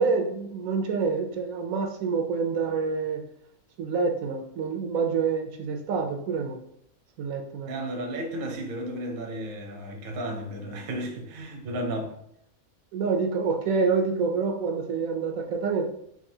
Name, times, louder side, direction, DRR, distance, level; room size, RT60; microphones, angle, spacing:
voice 1, 0.0-3.2 3.8-6.6 7.2-7.7 12.9-15.9, right 5 dB, 80° right, 1.0 m, -27 dB
voice 2, 7.6-12.2, right 1 dB, 50° right, 0.7 m, -33 dB
4.7 x 2.6 x 2.7 m
omnidirectional pair, 1.4 m